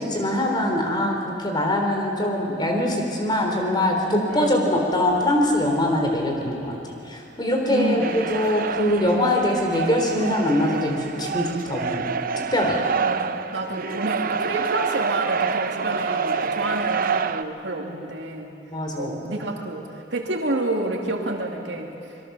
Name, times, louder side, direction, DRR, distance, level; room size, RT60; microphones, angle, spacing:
voice 1, 0.0-6.8 7.1-12.1 12.4-12.8 18.7-19.2, left 1 dB, 25° left, 1 dB, 3.8 m, -23 dB
voice 2, 4.3-4.8 7.7-8.4 12.9-18.6 19.0-22.0, right 2 dB, 80° right, 1 dB, 2.5 m, -29 dB
sound 1, 8.0-17.4, right 5 dB, 50° right, 0.7 m, -27 dB
26.0 x 22.0 x 6.9 m, 2.7 s
head